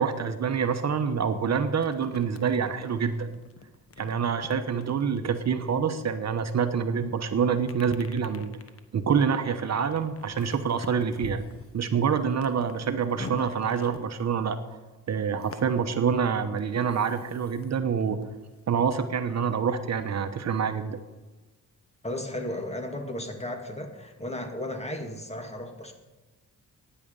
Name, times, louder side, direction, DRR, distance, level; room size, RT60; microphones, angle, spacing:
voice 1, 0.0-3.3 4.0-8.5 8.9-11.4 11.7-14.6 15.1-18.2 18.7-21.0, right 6 dB, 55° right, 8 dB, 1.1 m, -26 dB
sound 1, 1.7-6.6 7.6-14.7 15.4-17.7 18.0-19.3, left 4 dB, 45° left, 1.2 m, -46 dB
voice 2, 22.0-25.9, left 1 dB, 20° left, 4 dB, 2.1 m, -34 dB
15.5 x 10.0 x 5.4 m, 1.2 s
cardioid pair, 110°, 33 cm